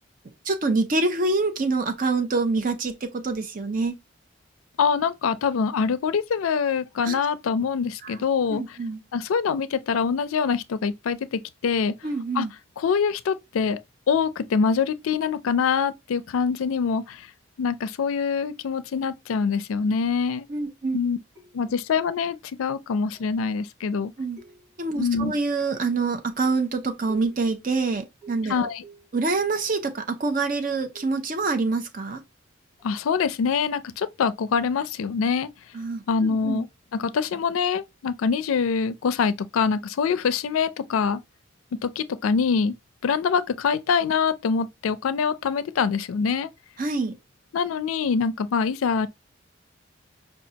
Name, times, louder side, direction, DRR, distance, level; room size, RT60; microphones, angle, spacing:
voice 1, 0.4-3.9 7.0-7.2 8.0-8.2 8.5-9.0 12.0-12.5 20.5-21.0 24.2-24.4 24.8-28.7 29.1-32.2 35.7-36.6 46.8-47.2, right 3 dB, 40° right, 0.6 m, -26 dB
voice 2, 4.8-8.8 9.1-11.9 12.4-12.5 12.8-13.8 14.1-17.3 17.6-20.5 20.9-21.2 21.5-24.1 25.0-25.3 28.5-28.8 32.8-35.5 36.1-36.7 36.9-41.2 41.8-42.7 43.0-46.5 47.5-49.1, left 6 dB, 90° left, 0.4 m, -24 dB
sound 1, 21.3-21.9 23.1-23.5 24.4-25.0 25.7-26.2 27.1-27.6 28.2-29.9 30.9-31.4 32.8-33.0, right 4 dB, 5° right, 1.6 m, -50 dB
5.1 x 2.3 x 2.8 m
head